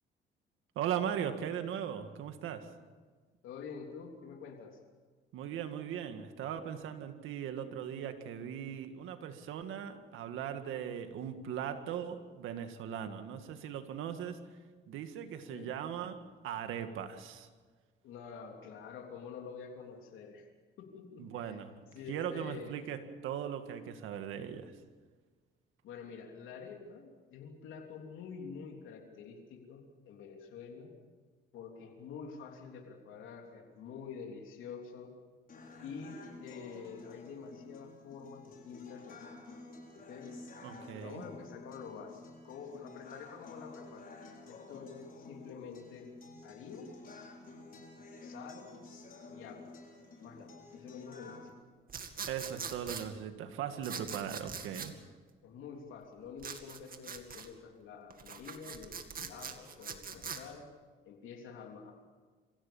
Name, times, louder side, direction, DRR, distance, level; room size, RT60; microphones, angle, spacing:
voice 1, 0.8-2.7 5.3-14.4 14.9-17.5 21.2-21.7 22.1-24.8 40.6-41.2 52.3-55.0, right 9 dB, 90° right, 8 dB, 1.9 m, -39 dB
voice 2, 3.4-4.8 15.5-15.7 18.0-20.5 20.8-21.6 21.9-22.8 25.8-30.9 31.5-35.1 35.8-39.4 39.9-40.3 41.0-44.1 44.4-46.1 46.4-46.9 48.2-48.7 49.3-49.7 50.2-51.6 55.4-60.6 61.0-61.9, left 6 dB, 85° left, 1 dB, 3.4 m, -47 dB
sound 1, 35.5-51.5, left 3 dB, 45° left, 6.2 m, -51 dB
sound 2, 51.9-53.1 53.8-54.9 56.4-57.5 58.1-60.4, right 6 dB, 45° right, 2.3 m, -42 dB
26.0 x 16.0 x 7.1 m, 1.4 s
cardioid pair, 90°, 20 cm